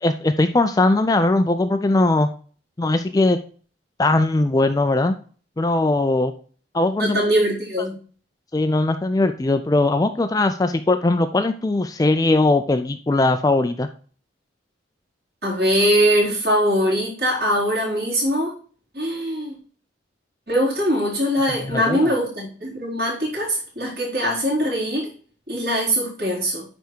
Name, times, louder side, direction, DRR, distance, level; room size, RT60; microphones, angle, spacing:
voice 1, 0.0-2.3 2.8-3.4 4.0-5.2 5.6-6.3 6.7-7.2 8.5-13.9 21.6-22.1, left 2 dB, 20° left, 9 dB, 0.3 m, -20 dB
voice 2, 7.0-8.0 15.4-18.5 18.9-19.6 20.5-25.1 25.5-26.6, equal, 50° right, -5 dB, 3.9 m, -22 dB
9.3 x 3.5 x 4.4 m, 0.42 s
head